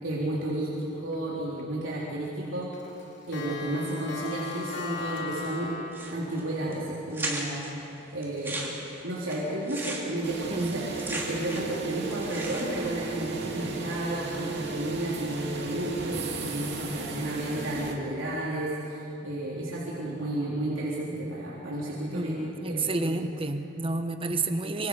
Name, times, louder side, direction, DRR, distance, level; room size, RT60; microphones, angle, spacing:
voice 1, 0.0-2.7 3.3-5.7 6.1-7.8 8.1-8.7 9.0-23.1, right 1 dB, 80° right, -7 dB, 3.8 m, -32 dB
Clock, 1.1-1.6 2.0-2.1 2.4-5.9, left 5 dB, 60° left, 3.2 m, -37 dB
sound 1, 5.9-6.4 6.7-6.8 7.1-7.7 8.2-11.8 12.0-12.9, right 2 dB, 10° right, 2.8 m, -36 dB
sound 2, 10.2-17.9, right 3 dB, 55° right, 2.6 m, -35 dB
voice 2, 10.5-10.8 22.1-24.9, right 2 dB, 25° right, 7 dB, 1.1 m, -30 dB
26.0 x 25.5 x 5.0 m, 3.0 s
head